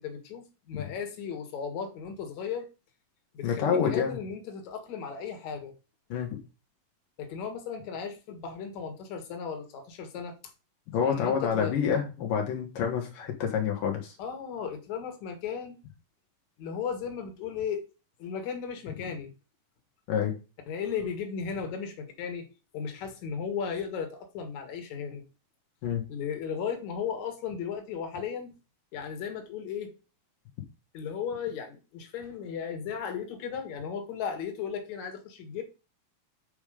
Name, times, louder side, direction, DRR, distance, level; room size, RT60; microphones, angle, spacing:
voice 1, 0.0-2.7 3.3-5.7 7.2-10.3 11.0-11.8 14.2-15.8 16.6-17.9 18.2-19.3 20.7-22.5 22.7-25.2 26.1-28.5 28.9-29.9 30.9-35.6, left 7 dB, 60° left, 5 dB, 3.1 m, -35 dB
voice 2, 3.4-4.2 6.1-6.4 10.9-14.2 20.1-20.3 25.8-26.0, left 7 dB, 80° left, 1 dB, 3.2 m, -28 dB
8.1 x 5.2 x 5.1 m, 0.30 s
omnidirectional pair, 3.8 m